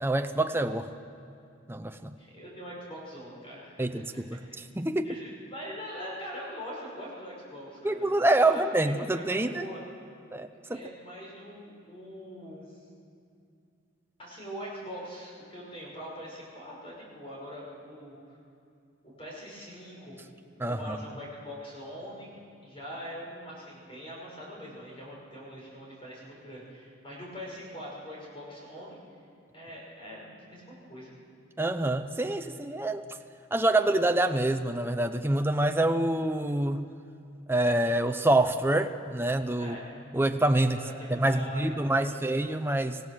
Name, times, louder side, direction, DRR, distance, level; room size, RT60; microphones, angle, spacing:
voice 1, 0.0-0.9 1.7-2.1 3.8-5.2 7.8-9.7 10.3-10.8 20.6-21.0 31.6-33.0 33.5-36.9 37.5-39.8 40.1-40.8 41.1-43.0, right 1 dB, 10° right, 7 dB, 0.6 m, -26 dB
voice 2, 2.2-4.0 5.0-9.8 10.7-12.8 14.2-18.4 19.2-20.2 20.5-22.3 22.6-29.0 29.5-31.1 39.6-39.9 40.6-42.3, equal, 30° left, -4 dB, 5.8 m, -43 dB
26.0 x 16.0 x 6.4 m, 2.5 s
head